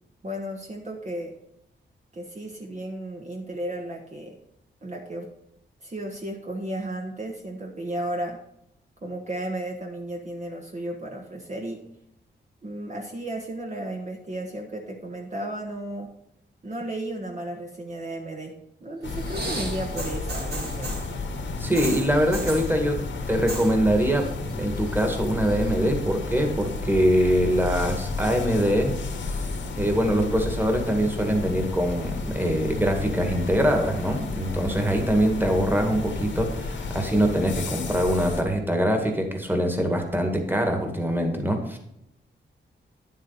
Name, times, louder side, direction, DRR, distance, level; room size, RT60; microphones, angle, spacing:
voice 1, 0.2-1.3 2.1-4.4 4.8-5.3 5.8-8.4 9.0-11.8 12.6-16.1 16.6-21.1, right 1 dB, 35° right, 1 dB, 1.4 m, -34 dB
sound 1, 19.0-38.4, left 3 dB, 80° left, 1.6 m, -32 dB
sound 2, 19.2-21.1 21.7-22.7 23.3-23.7 24.0-24.5 24.9-25.6 26.4-26.5, right 2 dB, 55° right, 2.6 m, -35 dB
voice 2, 21.6-23.0 23.3-28.9 29.8-41.8, equal, 10° right, 4 dB, 2.0 m, -23 dB
10.0 x 7.4 x 4.1 m, 0.81 s
cardioid pair, 90°, 19 cm